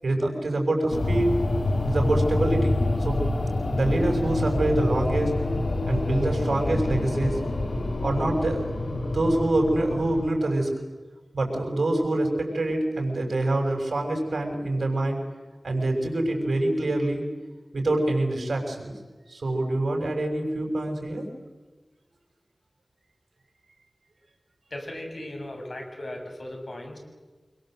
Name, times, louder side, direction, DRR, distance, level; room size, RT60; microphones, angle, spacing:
voice 1, 0.0-1.3 1.8-3.2 3.7-5.3 5.8-7.4 8.0-10.7 11.3-15.2 15.6-17.2 17.7-18.9 19.3-21.3, right 1 dB, 75° right, 2 dB, 6.7 m, -25 dB
sound 1, 0.9-10.3, left 2 dB, 75° left, 2.8 m, -27 dB
voice 2, 24.7-27.0, left 1 dB, 50° left, 2 dB, 7.2 m, -37 dB
26.0 x 23.5 x 8.0 m, 1.3 s
wide cardioid pair, 65°, 0 cm